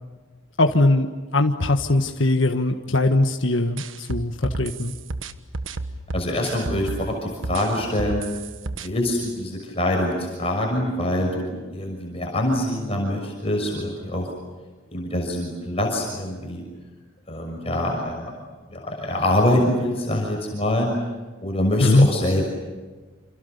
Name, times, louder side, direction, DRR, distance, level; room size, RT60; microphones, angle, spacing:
voice 1, 0.6-1.1 1.3-4.9 21.8-22.1, left 2 dB, 75° left, 4 dB, 1.6 m, -20 dB
sound 1, 3.8-7.1 7.4-8.9, right 3 dB, 80° right, 1.4 m, -31 dB
voice 2, 6.1-8.2 8.8-14.3 14.9-16.6 17.3-18.3 18.7-20.9 21.4-22.4, left 1 dB, 30° left, 0 dB, 6.2 m, -24 dB
29.5 x 28.0 x 6.8 m, 1.3 s
head